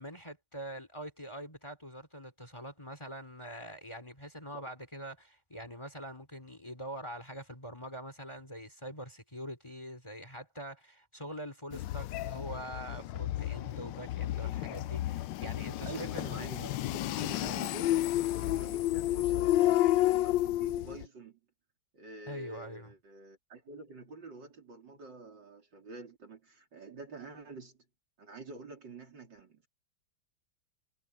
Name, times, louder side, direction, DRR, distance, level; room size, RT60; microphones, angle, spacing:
voice 1, 0.0-16.5 17.4-17.6 22.3-22.9, equal, 15° left, 3.2 m, -44 dB
sound 1, 11.7-21.1, left 14 dB, 75° left, 1.2 m, -31 dB
voice 2, 15.8-21.4 21.9-27.8 28.2-29.7, right 3 dB, 70° right, 4.4 m, -48 dB
omnidirectional pair, 2.0 m